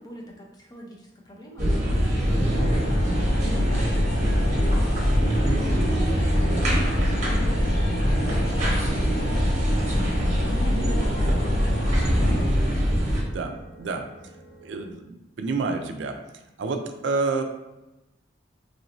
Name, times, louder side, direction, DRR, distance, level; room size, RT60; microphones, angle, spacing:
voice 1, 0.0-2.7 3.4-6.0 6.3-9.4 10.3-11.7, left 1 dB, 20° left, -2 dB, 0.6 m, -40 dB
sound 1, 1.6-13.2, equal, 40° right, 0.9 m, -23 dB
sound 2, 2.3-14.9, right 1 dB, 15° right, 1.1 m, -40 dB
sound 3, 2.5-12.5, left 1 dB, 70° left, 0.5 m, -31 dB
voice 2, 12.1-12.4 13.1-14.1 14.6-16.2 16.6-17.4, right 3 dB, 75° right, 5 dB, 0.4 m, -29 dB
3.1 x 2.6 x 2.9 m, 0.99 s
head